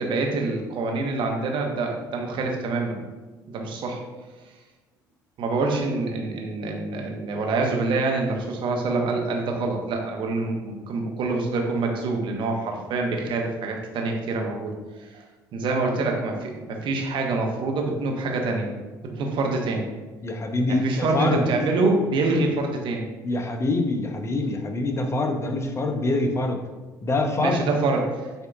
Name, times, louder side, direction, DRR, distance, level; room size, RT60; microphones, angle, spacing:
voice 1, 0.0-3.0 3.5-4.0 5.4-14.7 15.0-15.2 15.5-18.7 19.1-19.9 20.7-23.1 27.4-28.3, right 3 dB, 55° right, 1 dB, 1.0 m, -26 dB
voice 2, 20.2-21.5 23.2-26.6 27.0-27.7, left 2 dB, 25° left, 4 dB, 0.8 m, -25 dB
7.7 x 2.8 x 2.4 m, 1.2 s
hypercardioid pair, 55°, 10 cm